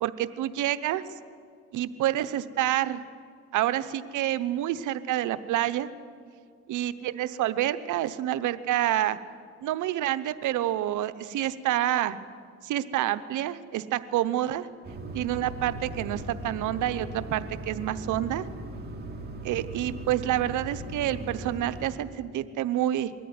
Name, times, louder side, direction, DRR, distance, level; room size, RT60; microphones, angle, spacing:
voice 1, 0.0-1.0 1.7-3.0 3.5-5.9 6.7-9.2 9.6-12.2 12.6-14.7 15.1-18.5 19.4-23.1, right 13 dB, 85° right, 13 dB, 0.9 m, -28 dB
sound 1, 14.8-21.9, right 1 dB, 35° right, 2.9 m, -38 dB
21.5 x 14.0 x 9.5 m, 2.1 s
cardioid pair, 90°, 30 cm